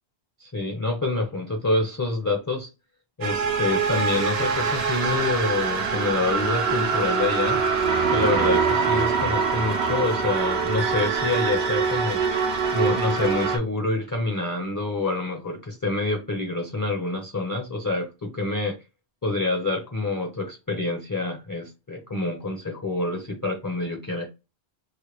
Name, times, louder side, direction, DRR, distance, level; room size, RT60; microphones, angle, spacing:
voice 1, 0.4-2.7 3.2-7.6 8.1-12.2 12.7-18.8 19.2-24.3, left 2 dB, 25° left, 0.5 m, -27 dB
sound 1, 3.2-13.6, right 5 dB, 75° right, 0.9 m, -24 dB
3.2 x 2.1 x 3.1 m
omnidirectional pair, 1.1 m